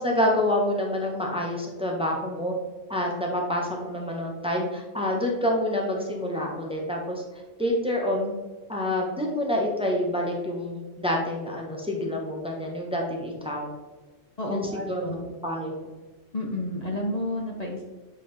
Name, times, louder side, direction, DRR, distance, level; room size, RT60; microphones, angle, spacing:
voice 1, 0.0-2.5 2.9-7.2 7.6-8.3 8.7-13.7 14.5-15.2 15.4-15.7, left 1 dB, 5° right, -1 dB, 0.9 m, -27 dB
voice 2, 14.4-15.3 16.3-17.8, left 1 dB, 40° left, -1 dB, 0.7 m, -31 dB
8.4 x 3.7 x 3.3 m, 1.3 s
omnidirectional pair, 1.2 m